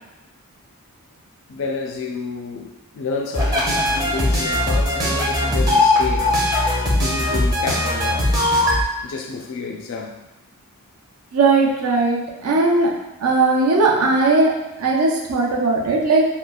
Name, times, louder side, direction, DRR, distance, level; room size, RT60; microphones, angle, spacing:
voice 1, 1.5-6.4 6.9-8.3 9.0-10.2, left 4 dB, 60° left, 2 dB, 0.3 m, -29 dB
sound 1, 3.3-8.8, left 1 dB, 15° right, 0.5 m, -19 dB
voice 2, 11.3-12.9 13.2-14.5 14.8-16.2, right 3 dB, 75° right, -2 dB, 0.5 m, -18 dB
3.0 x 2.2 x 2.3 m, 0.98 s
head